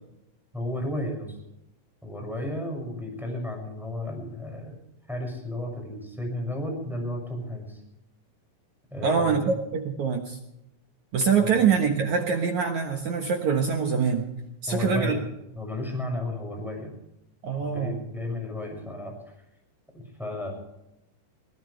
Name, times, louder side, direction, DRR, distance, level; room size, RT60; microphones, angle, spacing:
voice 1, 0.5-1.4 2.0-4.8 5.1-7.8 8.9-9.6 11.4-11.6 14.7-15.3 15.6-16.9 17.6-19.1 19.9-20.5, left 1 dB, ahead, 1 dB, 6.0 m, -33 dB
voice 2, 9.0-10.4 11.1-14.3 14.6-15.2 17.4-18.0, right 6 dB, 60° right, 3 dB, 2.0 m, -24 dB
23.0 x 18.0 x 3.3 m, 0.85 s
omnidirectional pair, 5.1 m